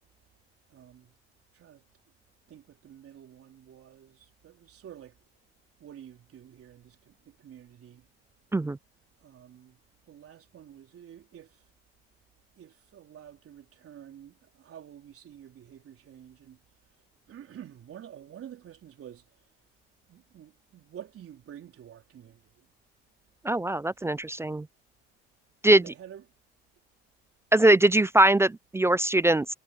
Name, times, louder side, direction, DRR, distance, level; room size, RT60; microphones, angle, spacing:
voice 1, 0.7-1.1 1.5-1.8 2.5-5.2 5.8-8.1 9.2-9.8 10.1-11.7 12.6-16.6 17.3-19.4 20.1-22.7 25.7-26.2, right 10 dB, 50° right, 4.0 m, -49 dB
voice 2, 23.4-24.7 25.6-25.8 27.5-29.5, right 1 dB, 10° right, 0.3 m, -21 dB
hypercardioid pair, 70°, 30 cm